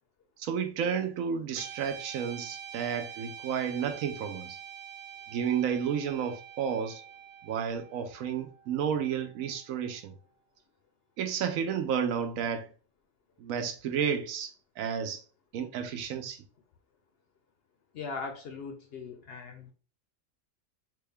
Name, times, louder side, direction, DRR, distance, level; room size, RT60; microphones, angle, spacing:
voice 1, 0.4-4.6 5.3-7.0 7.4-10.1 11.2-12.7 13.4-15.2 15.5-16.4, right 7 dB, 85° right, 1.0 m, -31 dB
Guitar, 1.5-10.0, right 9 dB, 45° right, 0.7 m, -46 dB
voice 2, 17.9-19.7, left 4 dB, 65° left, 0.6 m, -39 dB
3.4 x 2.3 x 3.4 m
omnidirectional pair, 1.4 m